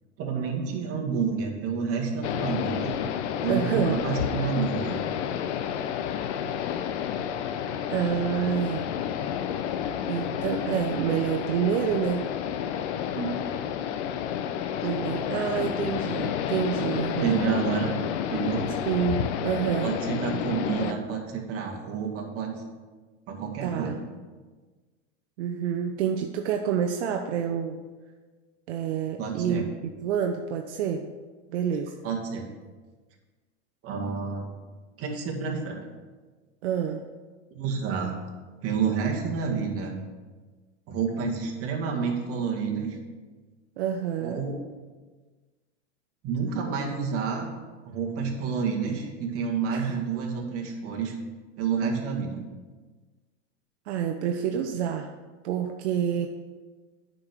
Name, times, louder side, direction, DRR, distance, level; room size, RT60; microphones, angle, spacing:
voice 1, 0.2-2.9 3.4-5.0 13.1-13.6 17.2-18.0 18.3-18.7 19.8-22.6 23.3-24.0 29.2-29.6 32.0-32.5 33.8-34.6 35.0-35.9 37.5-38.2 38.6-40.0 40.9-43.0 44.2-44.6 46.2-47.5 47.8-51.1 51.6-52.4, right 6 dB, 40° right, -1 dB, 2.2 m, -29 dB
sound 1, 2.2-20.9, left 9 dB, 75° left, 0.9 m, -30 dB
voice 2, 3.5-4.0 7.9-8.8 10.1-12.3 14.8-17.4 18.8-20.0 20.3-20.4 20.8-21.0 23.6-24.0 25.4-27.8 28.7-29.7 30.0-31.0 31.5-31.9 36.6-37.0 43.8-44.4 49.7-50.0 53.9-55.1 55.4-56.3, right 8 dB, 75° right, 4 dB, 0.9 m, -28 dB
9.5 x 5.3 x 6.4 m, 1.3 s
supercardioid pair, 130°, 35 cm